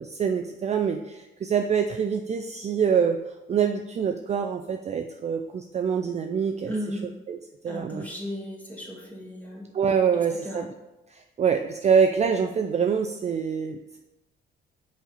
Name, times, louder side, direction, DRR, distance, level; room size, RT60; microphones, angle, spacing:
voice 1, 0.0-3.2 3.5-7.0 7.3-7.4 7.6-8.1 9.7-10.7 11.1-14.0, right 7 dB, 35° right, 5 dB, 0.4 m, -25 dB
voice 2, 6.7-7.1 7.7-9.6 10.4-10.6, equal, 5° left, -4 dB, 1.6 m, -35 dB
5.7 x 4.3 x 4.0 m, 1.0 s
cardioid pair, 90°, 20 cm